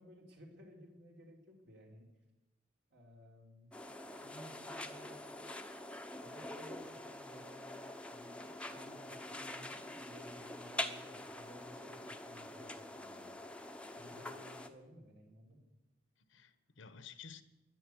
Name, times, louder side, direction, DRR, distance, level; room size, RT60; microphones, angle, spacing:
voice 1, 0.0-2.1 2.9-3.7 4.2-5.3 6.2-13.4 13.9-15.6, equal, 60° right, 1 dB, 3.8 m, -57 dB
sound 1, 3.7-14.7, left 1 dB, 5° left, 0.9 m, -45 dB
voice 2, 14.1-14.5 16.2-17.4, left 6 dB, 70° left, 12 dB, 1.1 m, -54 dB
13.5 x 11.0 x 9.4 m, 1.0 s
head